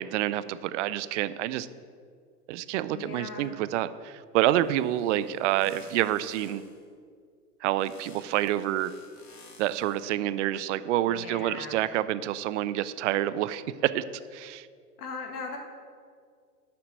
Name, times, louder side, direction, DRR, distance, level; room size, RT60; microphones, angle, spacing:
voice 1, 0.0-1.7 2.5-6.6 7.6-8.9 9.6-14.0 14.3-14.7, right 13 dB, 50° right, 15 dB, 0.6 m, -28 dB
voice 2, 2.9-3.6 11.1-11.9 15.0-15.6, left 4 dB, 70° left, 3 dB, 1.8 m, -39 dB
sound 1, 4.6-6.9 7.8-10.1, left 4 dB, 85° left, 1.8 m, -54 dB
9.7 x 5.8 x 7.5 m, 2.1 s
hypercardioid pair, 110°, 47 cm